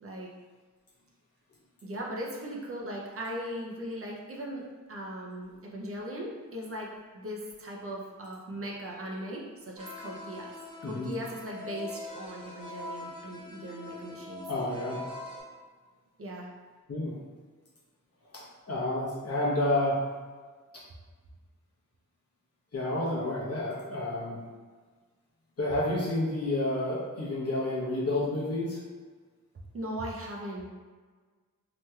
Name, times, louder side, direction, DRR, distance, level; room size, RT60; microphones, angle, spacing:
voice 1, 1.8-10.5 10.8-14.4 16.2-16.5 29.7-30.7, equal, 45° right, -2 dB, 0.5 m, -39 dB
sound 1, 9.8-15.4, left 3 dB, 15° right, 1.0 m, -42 dB
voice 2, 14.5-15.0 16.9-17.1 18.3-20.0 22.7-24.4 25.6-28.8, left 1 dB, 50° left, -6 dB, 0.9 m, -30 dB
3.0 x 2.9 x 2.3 m, 1.4 s
wide cardioid pair, 90°, 33 cm